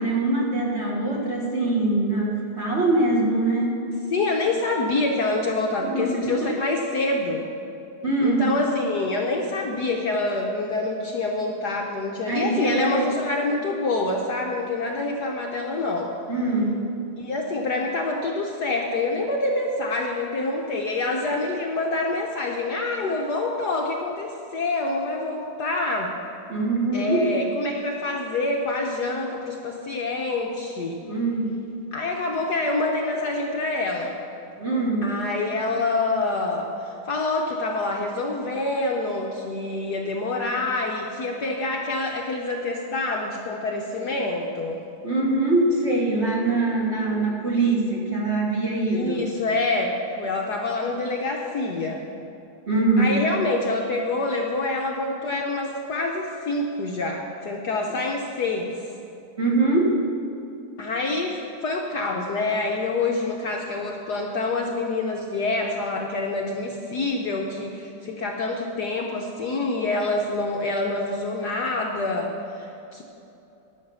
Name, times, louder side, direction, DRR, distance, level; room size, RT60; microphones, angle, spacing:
voice 1, 0.0-3.8 5.9-6.4 6.6-6.7 8.0-8.5 12.3-13.1 16.3-16.8 26.5-27.2 31.0-31.5 34.6-35.1 45.0-49.3 52.7-53.2 59.4-60.0, right 2 dB, 35° right, -3 dB, 1.5 m, -23 dB
voice 2, 4.1-7.5 8.2-16.1 17.2-26.1 26.9-31.0 31.9-34.2 35.0-44.8 48.9-52.0 53.0-58.7 60.8-73.0, left 2 dB, 60° left, 0 dB, 1.2 m, -26 dB
12.0 x 6.5 x 6.9 m, 2.8 s
omnidirectional pair, 2.4 m